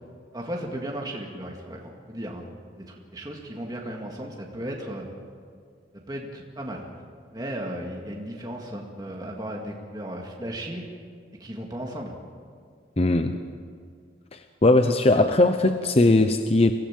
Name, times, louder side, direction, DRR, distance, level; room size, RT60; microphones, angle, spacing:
voice 1, 0.3-2.5 2.9-5.0 6.1-6.9 7.3-10.8 11.4-12.1, right 1 dB, 20° right, -1 dB, 2.1 m, -35 dB
voice 2, 13.0-13.4 14.3-16.7, left 2 dB, 35° left, 8 dB, 0.7 m, -19 dB
24.5 x 16.5 x 7.5 m, 2.1 s
head